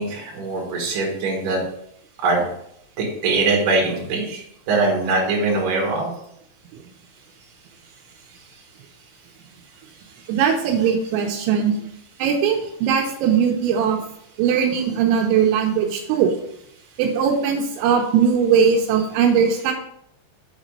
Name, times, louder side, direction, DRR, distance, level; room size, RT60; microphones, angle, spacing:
voice 1, 0.0-1.6 2.2-2.5 3.0-4.4 4.7-6.1, right 3 dB, 55° right, -2 dB, 3.1 m, -22 dB
voice 2, 10.3-11.8 12.2-14.0 14.4-16.3 17.0-19.7, right 7 dB, 85° right, 2 dB, 3.1 m, -19 dB
7.4 x 4.1 x 5.2 m, 0.73 s
omnidirectional pair, 5.2 m